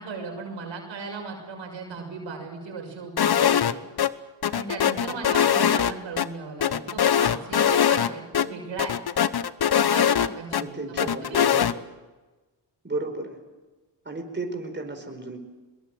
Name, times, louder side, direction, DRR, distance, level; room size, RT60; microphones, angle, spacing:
voice 1, 0.0-3.8 4.5-9.0 9.7-11.6, right 4 dB, 85° right, 2 dB, 6.4 m, -36 dB
sound 1, 3.2-3.7 4.0-4.1 4.4-6.3 6.6-8.1 8.3-8.5 8.8-10.6 11.0-11.7, left 9 dB, 60° left, 1.1 m, -21 dB
voice 2, 10.5-11.7 12.8-13.4 14.0-15.4, right 2 dB, 25° right, 4 dB, 4.8 m, -33 dB
22.5 x 22.0 x 7.9 m, 1.2 s
cardioid pair, 65°, 44 cm